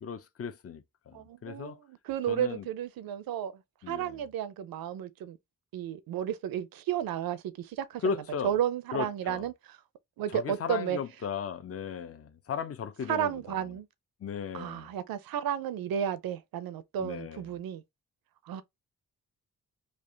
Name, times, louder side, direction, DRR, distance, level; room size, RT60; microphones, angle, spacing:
voice 1, 0.0-1.8 2.3-2.7 3.8-4.2 8.0-8.6 8.9-9.5 10.3-13.7 14.2-14.9 17.0-17.4, left 6 dB, 45° left, 0.6 m, -36 dB
voice 2, 1.1-3.5 3.9-5.4 5.7-8.0 8.4-9.8 10.2-11.0 13.1-13.9 14.5-17.8 18.5-18.6, right 10 dB, 90° right, 0.5 m, -33 dB
3.3 x 2.4 x 3.7 m
cardioid pair, 60°, 34 cm